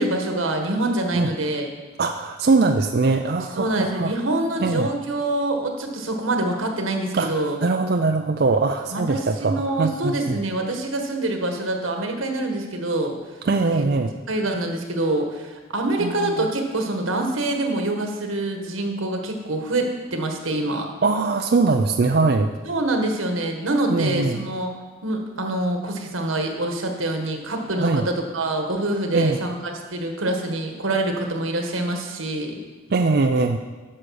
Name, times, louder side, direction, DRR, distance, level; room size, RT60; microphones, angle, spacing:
voice 1, 0.0-1.7 3.6-7.6 8.9-13.2 13.6-13.9 14.3-20.9 22.7-24.7 25.0-32.6, right 2 dB, 85° right, 3 dB, 1.5 m, -25 dB
voice 2, 2.0-4.1 4.6-4.9 7.1-10.1 13.5-14.1 16.0-16.5 21.0-22.5 23.9-24.4 27.8-28.0 29.1-29.4 32.9-33.6, right 3 dB, 50° right, 5 dB, 0.4 m, -21 dB
9.9 x 6.4 x 6.4 m, 1.3 s
head